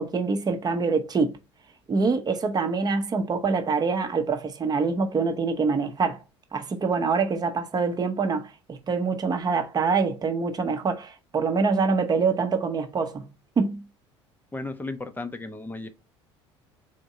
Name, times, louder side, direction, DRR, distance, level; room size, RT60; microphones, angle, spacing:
voice 1, 0.0-1.4 1.9-6.2 6.5-13.3 13.6-13.8, right 4 dB, 25° right, 0.8 m, -25 dB
voice 2, 14.5-15.9, left 2 dB, 10° left, 0.7 m, -34 dB
3.6 x 2.6 x 4.1 m
figure-of-eight pair, 65°, 15 cm